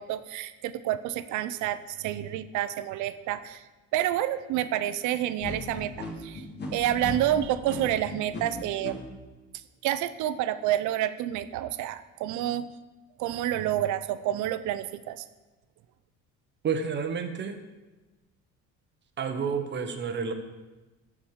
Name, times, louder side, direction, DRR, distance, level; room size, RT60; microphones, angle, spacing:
voice 1, 0.0-3.6 3.9-6.4 6.7-9.0 9.8-12.7 13.2-15.2, right 12 dB, 80° right, 13 dB, 0.7 m, -29 dB
sound 1, 5.4-8.9, left 3 dB, 35° left, 1.9 m, -37 dB
voice 2, 16.6-17.6 19.2-20.3, right 6 dB, 40° right, 7 dB, 1.0 m, -30 dB
11.5 x 4.8 x 7.3 m, 1.2 s
cardioid pair, 140°, 29 cm